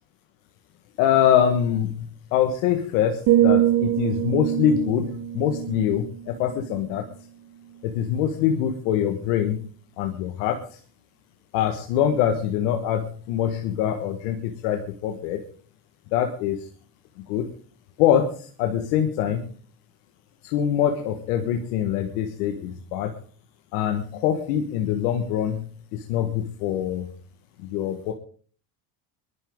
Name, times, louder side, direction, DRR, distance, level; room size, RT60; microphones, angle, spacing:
voice 1, 1.0-2.1 2.3-7.0 7.8-9.6 10.0-10.6 11.5-15.4 16.1-16.7 17.3-17.5 18.0-19.4 20.4-23.1 23.7-25.6 25.9-27.1 27.6-28.1, left 9 dB, 90° left, 4 dB, 1.6 m, -24 dB
sound 1, 3.3-7.2 7.6-7.9, right 13 dB, 70° right, 1.7 m, -24 dB
23.0 x 11.5 x 3.7 m, 0.42 s
supercardioid pair, 85°, 46 cm